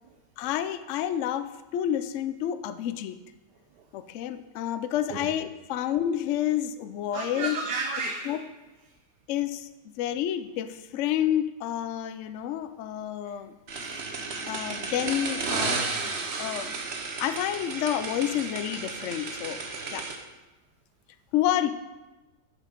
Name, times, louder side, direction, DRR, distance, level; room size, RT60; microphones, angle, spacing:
voice 1, 0.4-3.2 3.9-7.6 8.3-8.4 9.3-9.7 10.0-13.6 14.4-16.8 17.2-19.6 19.9-20.1 21.3-21.7, left 11 dB, 75° left, 11 dB, 0.7 m, -29 dB
voice 2, 7.1-8.5 8.8-8.9 13.2-13.4, right 4 dB, 80° right, 2 dB, 1.4 m, -33 dB
sound 1, 13.7-20.2, right 4 dB, 50° right, 1.0 m, -33 dB
7.4 x 6.4 x 5.2 m, 1.1 s
omnidirectional pair, 1.8 m